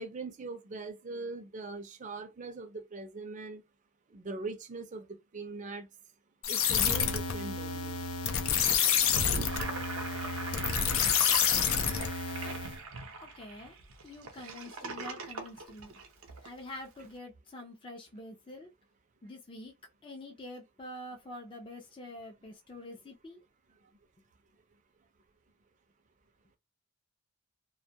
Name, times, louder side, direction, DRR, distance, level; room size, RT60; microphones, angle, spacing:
voice 1, 0.0-3.6 4.1-5.1 5.3-5.9 6.5-8.0, right 3 dB, 35° right, 0.5 m, -41 dB
sound 1, 6.4-12.8, left 7 dB, 80° left, 0.5 m, -29 dB
Gurgling / Sink (filling or washing), 9.0-16.5, right 3 dB, 85° right, 0.6 m, -40 dB
voice 2, 13.2-13.8 14.0-16.0 16.4-18.7 19.2-19.7 20.0-23.4, left 1 dB, 25° left, 0.5 m, -46 dB
2.2 x 2.1 x 2.7 m
head